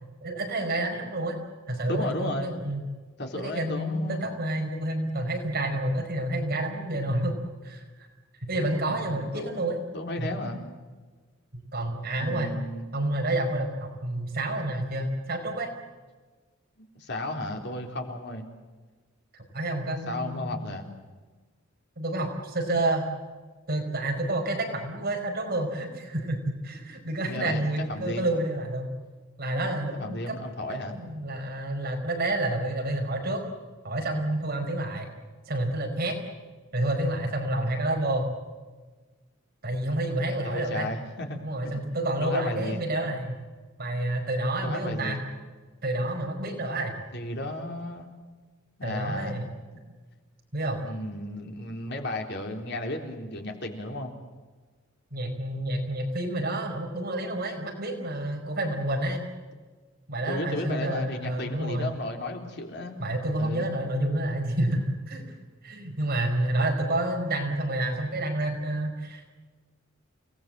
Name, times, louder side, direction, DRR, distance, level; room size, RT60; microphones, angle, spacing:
voice 1, 0.2-1.4 1.7-2.8 3.3-8.1 8.5-9.8 10.2-10.3 11.7-12.5 12.9-15.7 19.5-20.6 22.0-23.0 23.7-28.9 29.4-30.4 30.7-33.4 33.8-35.1 35.5-36.2 36.7-38.3 39.6-40.9 41.4-43.4 43.8-45.2 45.8-46.9 48.8-49.4 50.5-50.8 55.1-59.2 60.1-61.9 63.0-65.3 65.6-69.2, right 1 dB, 50° right, 3 dB, 5.1 m, -29 dB
voice 2, 1.9-2.5 3.2-4.2 8.8-10.6 12.2-12.9 16.8-18.5 20.1-20.9 27.3-28.2 29.9-31.0 40.4-41.4 41.6-41.8 42.2-42.8 44.6-45.3 47.1-48.1 48.8-49.4 49.7-49.8 50.8-54.1 60.3-63.0 63.4-63.7, left 1 dB, 60° left, 3 dB, 3.8 m, -34 dB
30.0 x 19.0 x 7.8 m, 1.4 s
head